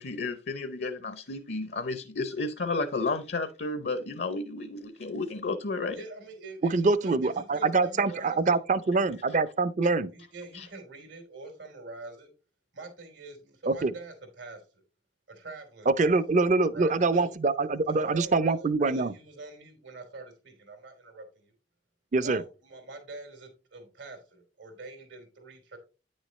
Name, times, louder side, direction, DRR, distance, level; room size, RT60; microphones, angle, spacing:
voice 1, 0.0-6.0 10.5-10.7, left 3 dB, 65° left, 0.7 m, -32 dB
voice 2, 5.9-8.6 9.0-9.1 10.1-12.3 12.7-14.8 15.3-16.2 16.7-17.3 17.8-21.5 22.2-25.8, right 3 dB, 85° right, 3.2 m, -44 dB
voice 3, 6.7-10.1 13.7-13.9 15.9-19.1 22.1-22.4, right 3 dB, 40° right, 0.5 m, -25 dB
9.6 x 6.4 x 3.1 m
head